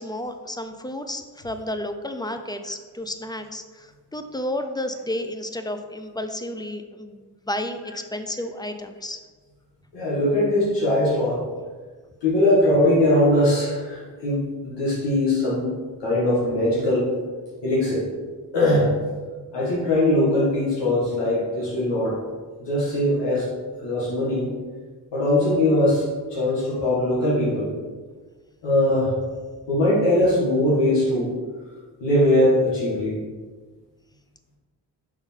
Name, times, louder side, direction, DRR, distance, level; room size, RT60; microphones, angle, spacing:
voice 1, 0.0-9.2, left 1 dB, 10° left, 8 dB, 0.5 m, -32 dB
voice 2, 9.9-11.4 12.2-15.7 16.0-17.1 17.6-18.1 18.5-18.9 19.5-22.2 22.6-23.5 23.8-24.6 25.1-26.0 26.3-27.7 28.6-29.2 29.7-31.4 32.0-33.2, left 1 dB, 80° left, -7 dB, 1.8 m, -21 dB
5.6 x 3.9 x 4.4 m, 1.4 s
cardioid pair, 65°, 42 cm